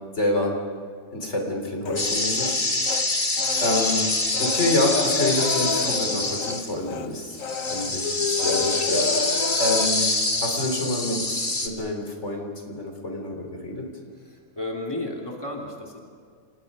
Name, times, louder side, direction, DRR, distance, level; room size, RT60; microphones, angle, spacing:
voice 1, 0.2-0.6 1.1-3.1 3.6-4.1 4.4-7.4 7.7-10.1 10.4-13.9, left 2 dB, 55° left, 2 dB, 3.9 m, -27 dB
Human voice, 1.9-3.1 3.4-6.6 6.9-7.1 7.4-9.9, left 6 dB, 75° left, 1.5 m, -30 dB
sound 1, 2.0-6.8 7.3-11.7, left 2 dB, 35° left, 2.3 m, -25 dB
voice 2, 14.3-16.0, left 1 dB, 15° left, -1 dB, 3.2 m, -33 dB
29.5 x 28.0 x 5.5 m, 2.1 s
omnidirectional pair, 1.4 m